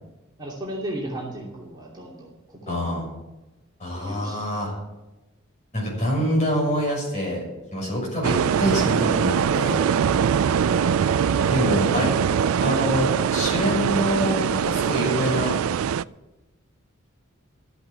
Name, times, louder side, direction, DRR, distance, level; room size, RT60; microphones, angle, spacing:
voice 1, 0.4-2.9 3.9-4.4 12.6-12.7, right 1 dB, 20° right, -4 dB, 2.8 m, -35 dB
voice 2, 2.7-3.1 3.8-4.7 5.7-7.4 7.7-9.8 11.5-12.1 12.6-15.6, equal, 35° left, -3 dB, 6.5 m, -25 dB
sound 1, 8.2-16.0, right 8 dB, 85° right, 0.4 m, -22 dB
Wind instrument woodwind instrument, 9.0-15.5, right 3 dB, 45° right, 2.2 m, -36 dB
13.5 x 8.3 x 9.0 m, 1.0 s
head